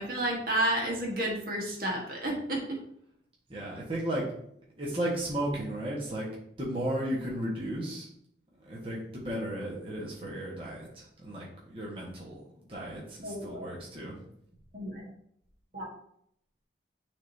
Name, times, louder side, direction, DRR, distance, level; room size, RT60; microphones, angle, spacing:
voice 1, 0.0-2.8 13.2-13.7 14.7-15.1 15.7-15.9, right 1 dB, 50° right, -1 dB, 1.4 m, -31 dB
voice 2, 3.5-4.2 4.7-6.3 6.6-8.1 8.6-14.1, right 1 dB, 30° right, -5 dB, 1.3 m, -34 dB
9.8 x 3.7 x 2.7 m, 0.70 s
head